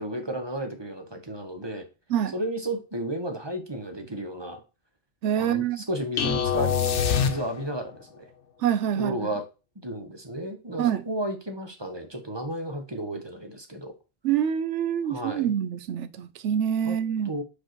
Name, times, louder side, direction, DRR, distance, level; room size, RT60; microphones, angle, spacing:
voice 1, 0.0-1.9 2.3-4.6 5.4-8.3 8.9-9.4 9.8-13.9 15.0-15.5 16.8-17.0 17.2-17.4, right 1 dB, 25° right, 1.1 m, -33 dB
voice 2, 5.2-5.8 8.6-9.2 10.8-11.0 14.2-17.3, right 9 dB, 85° right, 1.0 m, -26 dB
sound 1, 6.2-7.9, left 8 dB, 85° left, 1.1 m, -25 dB
5.4 x 4.4 x 4.5 m
omnidirectional pair, 1.2 m